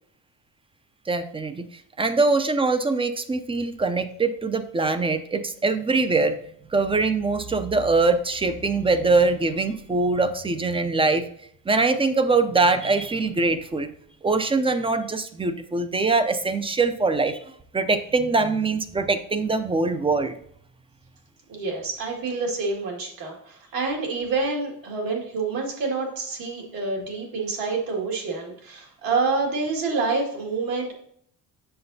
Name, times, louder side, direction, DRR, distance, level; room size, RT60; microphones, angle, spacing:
voice 1, 1.1-1.7 2.0-6.3 6.7-11.2 11.7-13.9 14.2-17.4 17.7-20.3, right 3 dB, 15° right, 10 dB, 0.4 m, -23 dB
voice 2, 21.5-30.9, right 3 dB, 70° right, 0 dB, 2.1 m, -27 dB
7.7 x 6.8 x 2.7 m, 0.65 s
cardioid pair, 130°, 36 cm